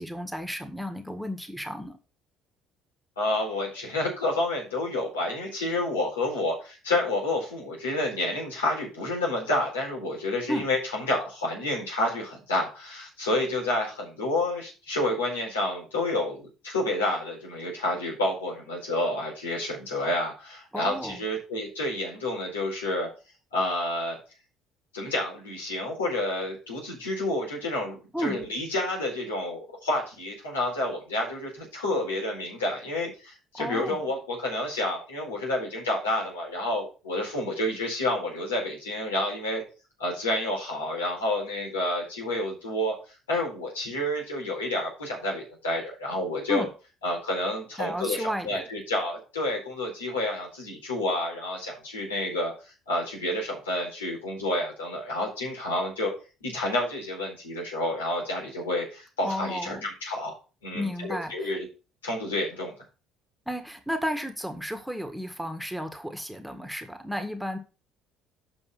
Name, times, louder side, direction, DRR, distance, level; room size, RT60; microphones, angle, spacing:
voice 1, 0.0-2.0 10.5-10.6 20.7-21.2 28.1-28.4 33.6-34.0 46.5-46.7 47.8-48.6 59.2-59.9 60.7-61.6 63.5-67.6, equal, ahead, 6 dB, 1.7 m, -33 dB
voice 2, 3.2-23.1 23.5-24.2 24.9-39.6 40.0-42.9 43.3-46.6 47.0-56.1 56.4-60.3 60.6-61.7 62.0-62.7, left 1 dB, 90° left, -2 dB, 4.5 m, -29 dB
7.9 x 5.6 x 5.7 m, 0.33 s
hypercardioid pair, 60°, 0 cm